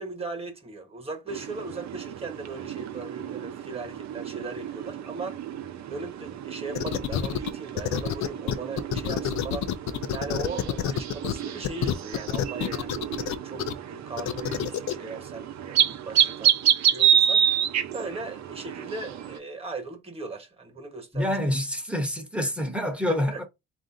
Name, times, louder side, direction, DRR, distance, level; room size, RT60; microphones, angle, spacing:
voice 1, 0.0-5.4 5.9-9.7 10.1-16.6 16.8-17.5 17.9-21.4 23.3-23.4, right 3 dB, 20° right, 1.4 m, -38 dB
sound 1, 1.3-19.4, right 9 dB, 65° right, 0.7 m, -29 dB
sound 2, 6.8-7.5 7.8-11.3 11.6-13.7 14.2-14.9, left 11 dB, 70° left, 0.6 m, -27 dB
voice 2, 21.1-23.4, left 1 dB, 5° right, 1.1 m, -27 dB
3.7 x 2.6 x 3.7 m
cardioid pair, 90°, 30 cm